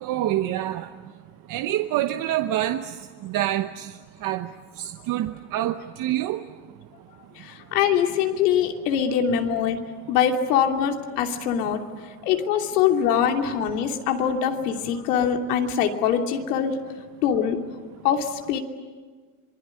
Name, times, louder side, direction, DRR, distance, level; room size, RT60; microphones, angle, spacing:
voice 1, 0.0-0.9 1.5-2.9 3.2-3.9 4.2-4.5 4.8-6.4, right 13 dB, 45° right, 8 dB, 1.0 m, -26 dB
voice 2, 7.3-9.8 10.1-11.8 12.2-16.8 17.2-17.6 18.0-18.6, left 8 dB, 80° left, 3 dB, 3.0 m, -23 dB
27.0 x 20.5 x 9.8 m, 1.5 s
supercardioid pair, 125°, 46 cm